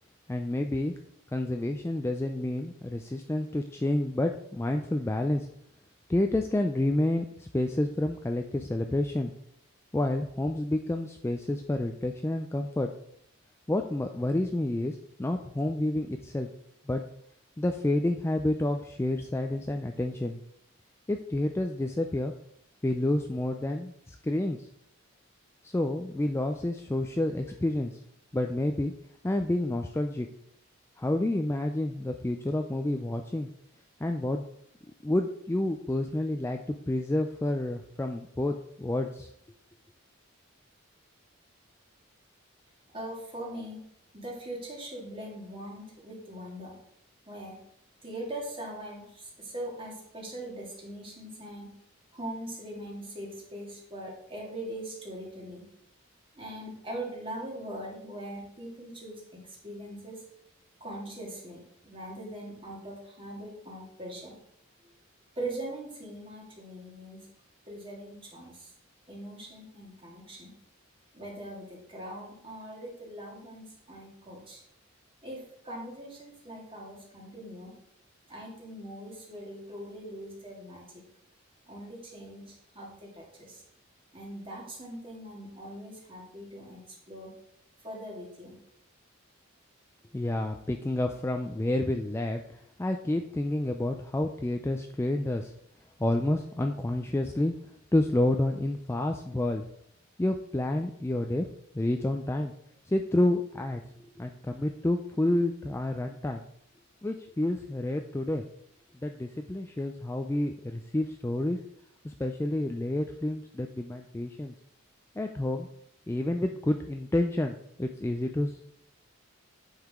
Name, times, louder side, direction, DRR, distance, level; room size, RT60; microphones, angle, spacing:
voice 1, 0.3-0.9 1.3-5.5 6.1-9.3 9.9-12.9 13.7-16.5 16.9-17.1 17.6-20.4 21.1-22.3 22.8-24.7 25.6-27.9 28.3-28.9 29.2-30.3 31.0-33.5 34.0-34.4 35.0-39.3 90.1-95.5 96.0-97.5 97.9-99.6 100.2-101.5 101.7-102.5 102.9-103.8 104.2-106.4 107.0-108.4 109.0-111.6 112.0-114.5 115.2-115.7 116.1-118.6, left 1 dB, 10° left, 4 dB, 0.3 m, -29 dB
voice 2, 42.9-43.8 44.1-46.8 47.3-47.6 48.0-51.7 52.1-55.7 56.4-60.2 60.8-64.4 65.4-67.3 67.7-68.7 69.1-70.5 71.1-74.6 75.2-77.7 78.3-80.9 81.7-83.6 84.1-87.3 87.8-88.6, right 1 dB, 25° right, -2 dB, 2.1 m, -41 dB
8.8 x 5.6 x 3.6 m, 0.73 s
head